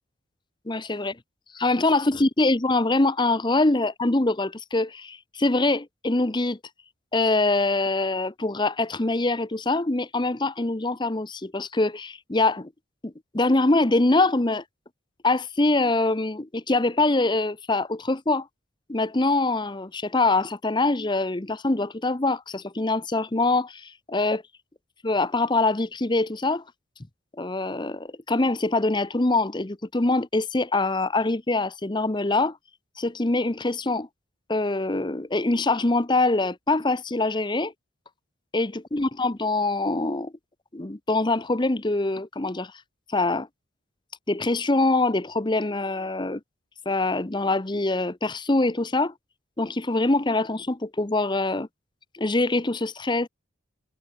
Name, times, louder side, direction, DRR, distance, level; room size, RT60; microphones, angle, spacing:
voice 1, 0.7-1.2 1.5-6.6 7.1-12.7 13.0-14.6 15.2-18.5 18.9-24.4 25.0-26.6 27.4-32.6 33.0-34.1 34.5-37.7 38.5-40.3 40.7-42.7 43.1-43.5 44.3-46.4 46.9-49.1 49.6-51.7 52.1-53.3, left 2 dB, 25° left, 0.8 m, -24 dB
head